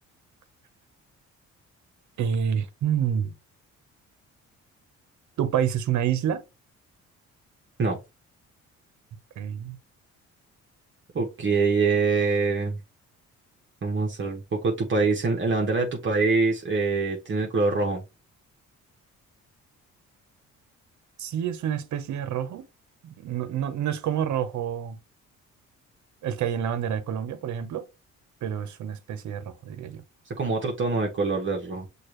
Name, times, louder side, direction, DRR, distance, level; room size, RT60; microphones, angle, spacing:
voice 1, 2.2-3.3 5.4-6.4 9.4-9.8 21.2-22.7 23.0-25.0 26.2-27.9 28.4-30.0, right 9 dB, 70° right, 0.9 m, -28 dB
voice 2, 11.1-12.8 13.8-18.0 30.4-31.9, right 4 dB, 40° right, 1.0 m, -24 dB
6.4 x 2.4 x 3.1 m
cardioid pair, 90°, 30 cm